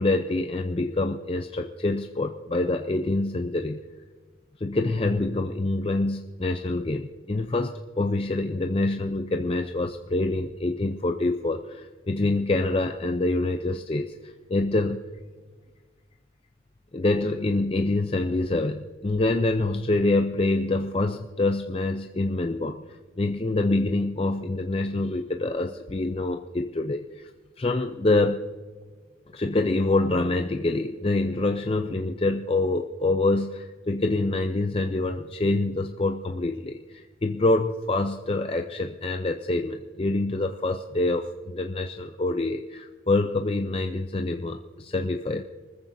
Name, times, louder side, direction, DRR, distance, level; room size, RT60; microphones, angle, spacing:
voice 1, 0.0-3.8 4.6-15.0 16.9-22.8 23.2-27.3 27.6-28.4 29.3-45.4, left 2 dB, 30° left, 5 dB, 0.5 m, -26 dB
24.5 x 14.5 x 2.7 m, 1.4 s
head